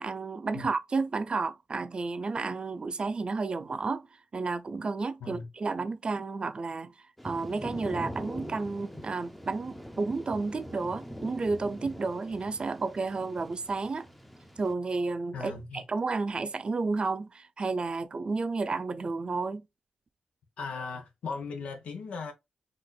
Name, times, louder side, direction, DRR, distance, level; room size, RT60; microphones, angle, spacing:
voice 1, 0.0-4.1 4.3-6.9 7.2-14.1 14.6-19.7, right 3 dB, 50° right, 0.5 m, -31 dB
Thunder / Rain, 7.2-14.7, equal, 5° left, 0.7 m, -43 dB
voice 2, 15.3-15.8 20.6-22.3, left 4 dB, 80° left, 0.7 m, -38 dB
4.1 x 2.5 x 2.2 m
supercardioid pair, 45°, 2 cm